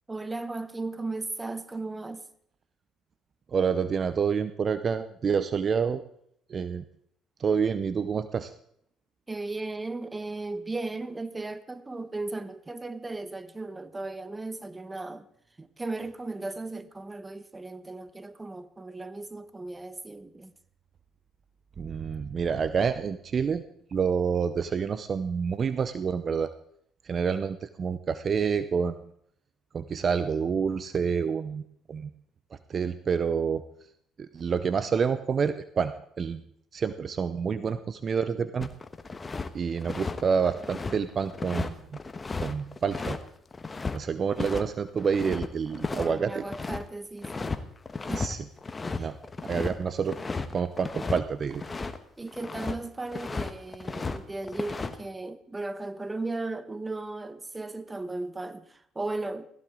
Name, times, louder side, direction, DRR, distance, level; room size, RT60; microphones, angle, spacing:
voice 1, 0.1-2.3 9.3-15.3 15.6-20.5 45.9-47.6 48.1-48.3 48.9-49.3 52.2-59.5, right 2 dB, 20° right, 1.2 m, -36 dB
voice 2, 3.5-6.0 6.5-6.8 7.4-8.5 21.8-23.6 23.9-26.5 27.0-29.0 29.7-31.6 31.9-32.1 32.7-33.6 34.2-36.4 36.7-38.7 39.5-41.7 42.4-43.2 43.9-46.4 48.2-48.4 49.0-49.2 49.4-50.2 50.5-51.6, right 6 dB, 45° right, 0.7 m, -28 dB
sound 1, 38.6-39.5 39.8-44.0 44.4-44.6 44.9-46.8 47.2-47.6 47.9-48.3 48.6-52.0 52.3-52.8 53.1-54.2 54.4-55.0, left 4 dB, 25° left, 1.2 m, -34 dB
16.5 x 15.5 x 3.8 m
supercardioid pair, 70°, 0 cm